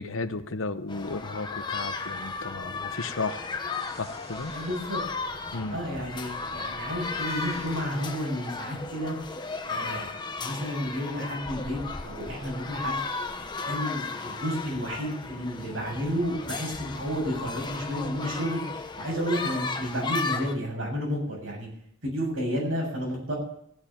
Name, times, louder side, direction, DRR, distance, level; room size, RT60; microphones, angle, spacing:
voice 1, 0.0-3.5 4.0-4.5 5.5-5.8, left 3 dB, 80° left, 11 dB, 0.9 m, -34 dB
sound 1, 0.9-20.5, left 4 dB, 20° left, 1.0 m, -35 dB
sound 2, 3.7-9.1, right 2 dB, 35° right, 1.4 m, -51 dB
voice 2, 4.5-5.0 5.7-9.2 9.7-10.1 10.4-13.0 13.7-18.6 19.0-21.7 22.0-23.3, equal, 80° right, -2 dB, 7.7 m, -31 dB
15.5 x 7.3 x 9.2 m, 0.70 s
head